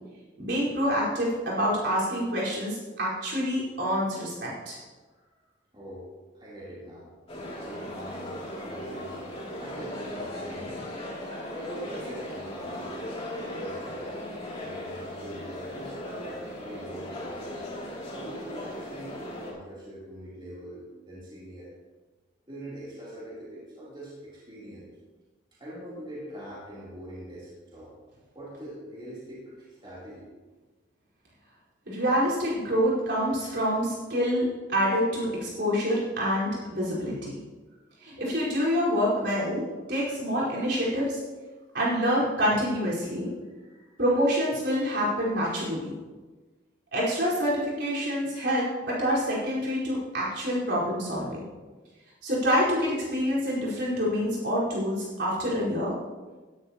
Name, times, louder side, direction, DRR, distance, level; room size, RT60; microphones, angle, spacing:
voice 1, 0.4-4.8 31.9-37.4 38.0-41.2 41.7-43.3 44.0-45.9 46.9-51.4 52.2-55.9, equal, 60° right, -7 dB, 4.7 m, -27 dB
voice 2, 5.1-5.5 5.7-6.0 6.3-7.1 7.6-9.2 9.5-11.0 11.5-14.1 14.5-17.6 18.1-21.7 22.5-24.9 25.6-27.9 28.3-30.3 43.4-44.0, right 1 dB, 25° right, -8 dB, 3.4 m, -43 dB
sound 1, 7.3-19.5, left 1 dB, 30° left, 2.9 m, -37 dB
16.5 x 11.5 x 3.0 m, 1.3 s
head